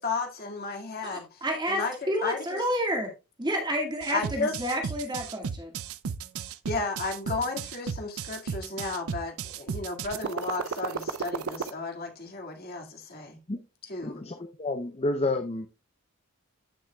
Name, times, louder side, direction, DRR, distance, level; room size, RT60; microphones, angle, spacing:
voice 1, 0.0-2.6 4.1-4.5 6.7-13.4 13.9-14.2, left 3 dB, 45° left, 2.0 m, -33 dB
voice 2, 1.0-3.1 3.4-5.7, equal, 20° right, 1.9 m, -30 dB
sound 1, 4.0-11.7, right 6 dB, 75° right, 0.5 m, -33 dB
voice 3, 14.0-15.7, left 2 dB, 25° left, 0.6 m, -30 dB
14.0 x 6.1 x 2.2 m
head